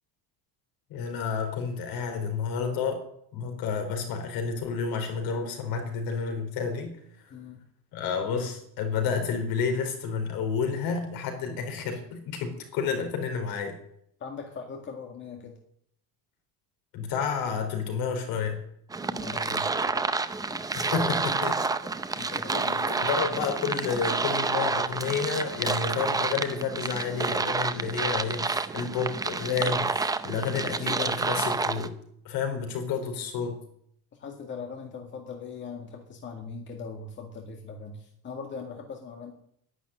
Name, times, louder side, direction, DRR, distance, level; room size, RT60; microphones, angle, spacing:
voice 1, 0.9-3.0 3.3-7.0 7.9-13.8 16.9-18.6 20.7-21.6 22.1-22.3 22.9-31.9 32.2-33.6, left 5 dB, 65° left, 5 dB, 4.6 m, -30 dB
voice 2, 7.3-7.6 14.2-15.6 19.0-20.1 20.5-20.6 22.1-23.1 26.7-27.0 32.5-32.7 34.2-39.3, left 5 dB, 30° left, 2 dB, 2.0 m, -40 dB
sound 1, 18.9-31.9, right 4 dB, 10° right, 0.6 m, -29 dB
11.5 x 10.5 x 9.9 m, 0.69 s
cardioid pair, 170°, 38 cm